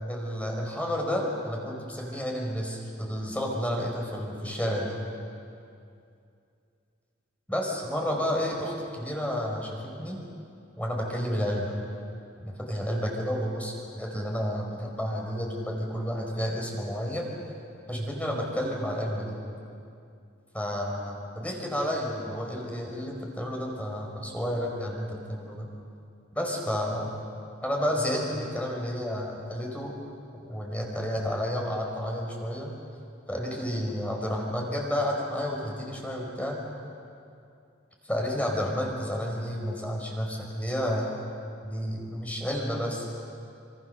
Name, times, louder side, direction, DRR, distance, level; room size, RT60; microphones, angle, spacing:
voice 1, 0.1-5.0 7.5-10.3 10.8-11.7 12.4-17.3 17.9-19.4 20.5-25.7 26.3-27.1 27.6-30.0 30.3-32.7 33.3-36.6 38.0-41.1 41.6-43.1, equal, 10° left, -1 dB, 4.9 m, -31 dB
27.0 x 26.5 x 6.8 m, 2.5 s
head